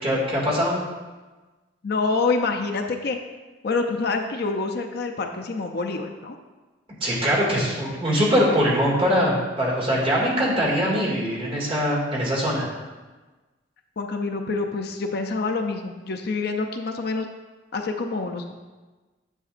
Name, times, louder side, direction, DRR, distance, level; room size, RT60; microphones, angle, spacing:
voice 1, 0.0-0.8 7.0-12.6, equal, 30° right, -5 dB, 2.2 m, -22 dB
voice 2, 1.8-3.2 3.6-6.4 7.6-7.9 14.0-17.3 17.7-18.5, left 3 dB, 55° left, 4 dB, 0.5 m, -27 dB
9.9 x 8.0 x 2.5 m, 1.3 s
head